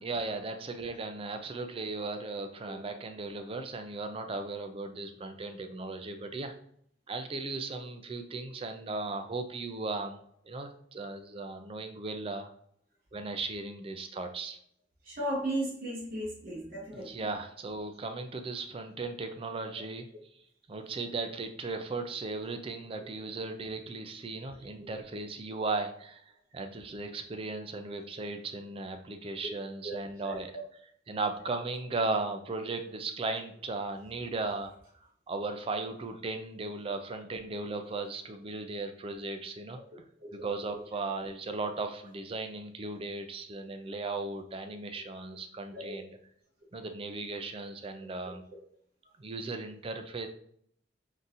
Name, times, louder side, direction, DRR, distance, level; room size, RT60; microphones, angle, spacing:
voice 1, 0.0-6.5 7.1-10.2 10.4-12.5 13.1-14.6 16.9-20.1 20.7-26.2 26.5-30.5 30.8-34.7 35.3-39.8 40.4-46.1 46.7-48.4 49.2-50.3, right 3 dB, 30° right, 6 dB, 0.4 m, -36 dB
voice 2, 15.1-17.1 29.8-29.9 30.2-30.4 45.7-46.0, right 1 dB, 55° right, -3 dB, 0.9 m, -35 dB
3.8 x 2.7 x 2.5 m, 0.66 s
head